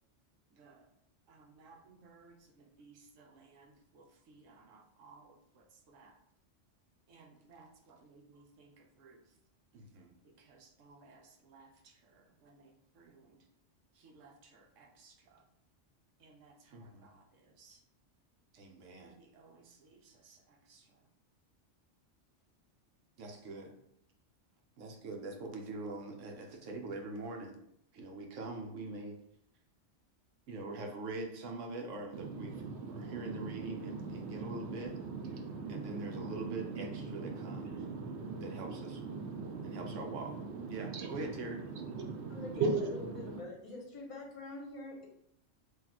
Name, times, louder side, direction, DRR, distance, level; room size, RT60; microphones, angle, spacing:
voice 1, 0.5-0.9 1.3-6.2 7.1-9.2 9.7-13.4 13.9-15.4 16.2-17.8 18.5-21.0 23.2-23.7 24.8-27.6 27.9-29.2 30.5-35.0 35.7-37.7 38.4-39.0 39.6-40.3 40.7-41.6, right 3 dB, 85° right, 3 dB, 1.1 m, -46 dB
voice 2, 32.1-43.4, right 4 dB, 65° right, 4 dB, 0.9 m, -39 dB
voice 3, 42.3-45.0, left 3 dB, 30° left, -1 dB, 1.0 m, -45 dB
3.0 x 2.7 x 3.9 m, 0.70 s
omnidirectional pair, 1.2 m